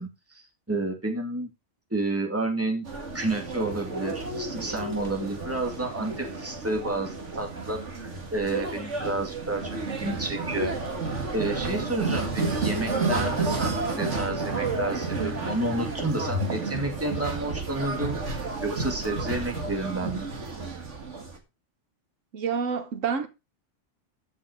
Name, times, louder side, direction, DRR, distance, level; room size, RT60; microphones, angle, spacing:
voice 1, 0.0-1.5 1.9-2.9 3.1-10.7 11.3-18.2 18.6-20.3, right 2 dB, 10° right, 2.2 m, -30 dB
sound 1, 2.9-21.4, right 3 dB, 70° right, 2.3 m, -31 dB
voice 2, 22.3-23.3, right 6 dB, 90° right, 1.5 m, -28 dB
14.0 x 5.9 x 4.7 m
omnidirectional pair, 1.3 m